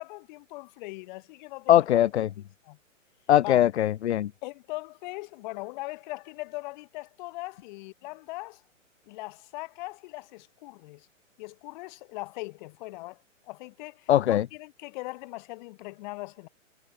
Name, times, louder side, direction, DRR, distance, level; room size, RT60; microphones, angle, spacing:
voice 1, 0.0-1.9 2.6-2.8 3.4-3.6 4.4-8.6 9.1-11.1 11.4-13.2 13.4-16.5, left 23 dB, 35° left, 3.0 m, -40 dB
voice 2, 1.7-2.3 3.3-4.3 14.1-14.4, left 12 dB, 55° left, 0.9 m, -21 dB
hypercardioid pair, 135°, 40 cm